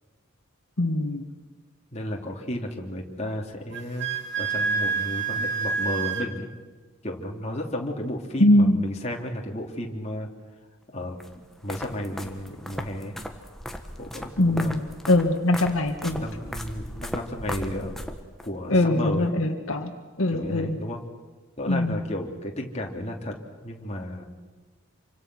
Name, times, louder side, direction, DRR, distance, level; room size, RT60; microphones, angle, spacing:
voice 1, 0.8-1.2 8.4-8.8 14.4-16.2 18.7-19.9 20.2-20.8 21.7-22.0, left 1 dB, 75° left, 4 dB, 1.9 m, -22 dB
voice 2, 1.9-4.1 4.3-6.5 7.0-10.3 10.9-13.2 14.0-14.7 16.2-18.0 18.4-19.3 20.3-21.0 21.6-23.4 23.6-24.3, left 1 dB, 30° left, 0 dB, 3.1 m, -33 dB
Wind instrument woodwind instrument, 3.7-6.3, right 5 dB, 50° right, 2.7 m, -27 dB
sound 1, 11.2-18.5, equal, ahead, 1.5 m, -37 dB
28.0 x 25.0 x 6.3 m, 1.3 s
head